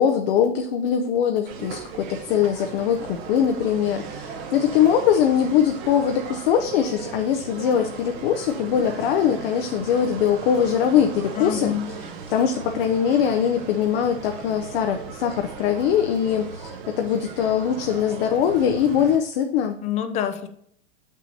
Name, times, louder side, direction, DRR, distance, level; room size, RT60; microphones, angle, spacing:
voice 1, 0.0-11.7 12.3-19.8, left 8 dB, 65° left, 5 dB, 0.7 m, -22 dB
sound 1, 1.5-19.2, right 5 dB, 50° right, 1.2 m, -37 dB
voice 2, 11.4-11.9 19.8-20.5, left 9 dB, 20° left, 8 dB, 0.5 m, -27 dB
6.7 x 6.2 x 2.8 m, 0.66 s
supercardioid pair, 150°, 32 cm